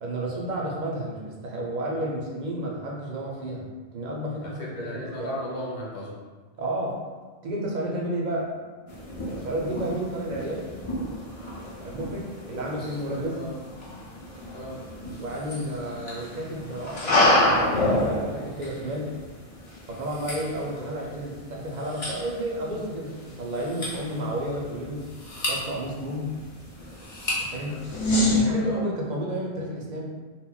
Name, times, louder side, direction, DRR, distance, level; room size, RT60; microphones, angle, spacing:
voice 1, 0.0-5.4 6.6-7.0 7.4-8.6 9.4-10.8 11.8-13.4 15.2-19.1 19.9-25.1 25.5-26.3 27.4-27.8 28.3-30.0, right 1 dB, 55° right, -2 dB, 0.5 m, -32 dB
voice 2, 4.4-6.2 12.5-13.0 13.3-13.6 14.5-14.8 20.8-20.9 27.7-28.2 28.6-28.8, equal, 65° left, -4 dB, 0.8 m, -36 dB
sound 1, 8.9-28.4, left 1 dB, 45° left, 0.5 m, -29 dB
2.2 x 2.0 x 3.7 m, 1.3 s
omnidirectional pair, 1.1 m